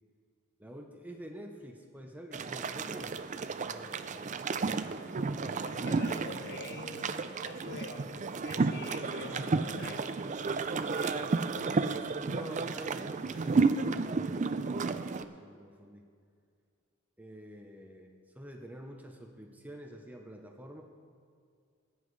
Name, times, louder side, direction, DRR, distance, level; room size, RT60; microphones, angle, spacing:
voice 1, 0.6-3.2 3.6-4.0 9.2-9.7 12.3-14.4 14.7-16.1 17.2-20.8, equal, 10° right, 2 dB, 0.7 m, -47 dB
sound 1, 2.3-15.2, right 4 dB, 35° right, 0.4 m, -32 dB
voice 2, 5.6-7.2 7.4-10.3 10.7-11.7, left 3 dB, 50° left, 3 dB, 1.3 m, -46 dB
20.0 x 9.9 x 3.2 m, 2.2 s
head